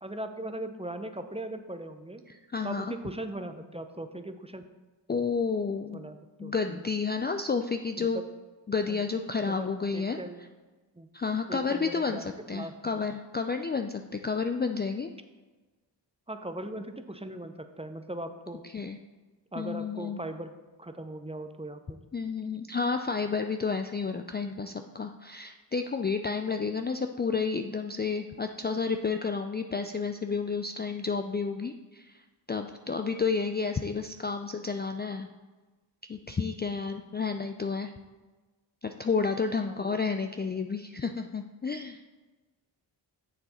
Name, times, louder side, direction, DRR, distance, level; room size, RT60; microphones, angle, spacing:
voice 1, 0.0-2.2 2.6-4.6 5.9-6.8 8.0-8.2 8.9-9.0 9.5-10.4 10.9-11.1 11.5-12.9 16.3-18.6 19.5-20.5 20.8-22.0 39.7-40.0, right 1 dB, 15° right, 8 dB, 0.7 m, -39 dB
voice 2, 2.3-2.9 5.1-6.0 6.4-8.2 8.7-10.2 11.1-15.1 18.7-19.0 19.6-20.2 22.1-32.2 32.5-35.3 36.1-37.9 38.8-42.0, left 5 dB, 25° left, 6 dB, 0.4 m, -31 dB
6.9 x 6.7 x 4.3 m, 1.2 s
cardioid pair, 50°, 47 cm